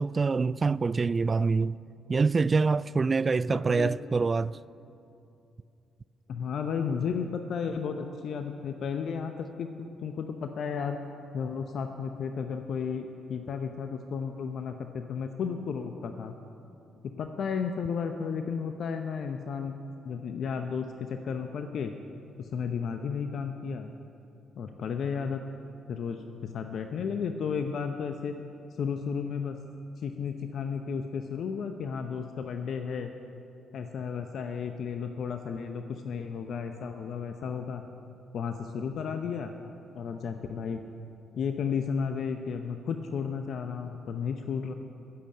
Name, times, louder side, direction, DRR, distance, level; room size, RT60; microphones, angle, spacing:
voice 1, 0.0-1.8 2.1-4.6, right 4 dB, 40° right, 0.3 m, -25 dB
voice 2, 3.5-3.9 6.3-11.0 11.3-16.3 17.2-19.8 20.0-21.9 22.4-23.9 24.6-25.4 25.9-28.4 28.8-29.6 30.0-33.1 33.7-37.8 38.3-39.5 39.9-40.8 41.3-44.7, left 6 dB, 65° left, 0.7 m, -33 dB
15.5 x 7.7 x 8.5 m
hypercardioid pair, 45°, 0 cm